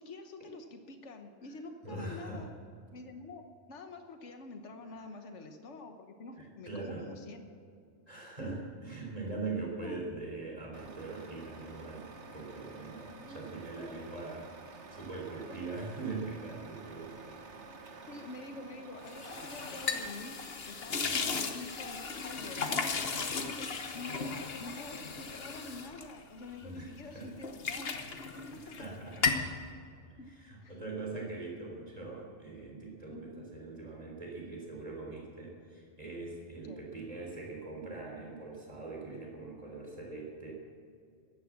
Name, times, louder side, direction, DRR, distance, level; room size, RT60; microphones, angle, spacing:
voice 1, 0.0-2.5 2.9-3.4 3.7-7.5 8.4-8.6 9.8-10.0 13.1-13.6 15.5-15.6 18.0-22.9 23.4-28.0 28.5-29.0 30.2-30.3 30.6-30.7 33.1-33.5 36.6-36.8, left 3 dB, 85° left, 6 dB, 1.5 m, -47 dB
voice 2, 1.8-2.5 6.4-7.1 8.1-14.5 14.9-17.2 21.0-21.3 26.6-27.4 28.5-29.4 30.3-40.5, right 3 dB, 35° right, -1 dB, 3.6 m, -42 dB
Truck, 10.7-20.1, right 3 dB, 75° right, 1.6 m, -50 dB
sound 1, 19.1-26.8 27.2-28.9 29.1-29.5, left 5 dB, 60° left, 1.3 m, -36 dB
15.0 x 11.0 x 7.3 m, 2.4 s
omnidirectional pair, 1.2 m